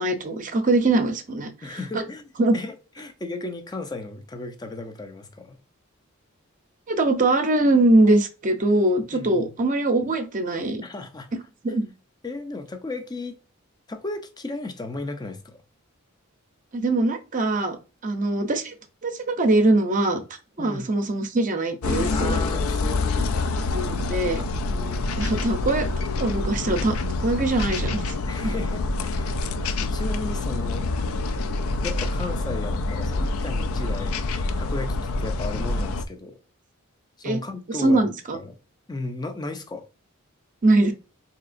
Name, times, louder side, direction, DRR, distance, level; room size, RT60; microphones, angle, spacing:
voice 1, 0.0-1.5 1.9-2.0 2.4-2.5 6.9-10.8 11.6-11.9 16.7-17.8 18.0-18.7 19.0-20.2 20.6-22.4 23.7-24.4 25.2-27.0 27.2-28.0 28.4-28.5 37.2-37.4 37.7-38.4 40.6-40.9, right 2 dB, 40° right, 0.6 m, -22 dB
voice 2, 1.6-2.2 2.5-5.6 9.1-9.5 10.8-11.3 12.2-13.4 13.9-15.6 20.6-20.9 22.1-23.5 24.7-25.0 28.3-29.3 29.8-30.9 31.8-34.2 34.6-36.4 37.2-38.0 38.3-38.5 38.9-39.9, left 2 dB, 20° left, 0.5 m, -35 dB
sound 1, 21.8-36.1, left 3 dB, 80° left, 0.4 m, -26 dB
4.1 x 2.8 x 2.5 m
head